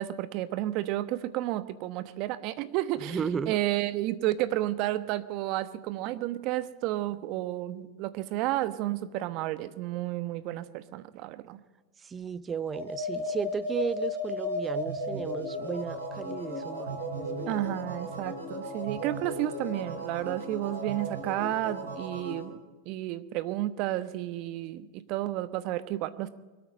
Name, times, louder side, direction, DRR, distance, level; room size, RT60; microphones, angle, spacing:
voice 1, 0.0-3.2 3.5-11.6 17.5-22.6 22.8-26.3, right 15 dB, 50° right, 1.0 m, -31 dB
voice 2, 3.0-3.6 12.0-17.7, right 6 dB, 25° right, 0.6 m, -35 dB
sound 1, 12.6-22.4, left 1 dB, 85° right, 4.1 m, -35 dB
24.5 x 8.8 x 5.3 m
hypercardioid pair, 95°, 0 cm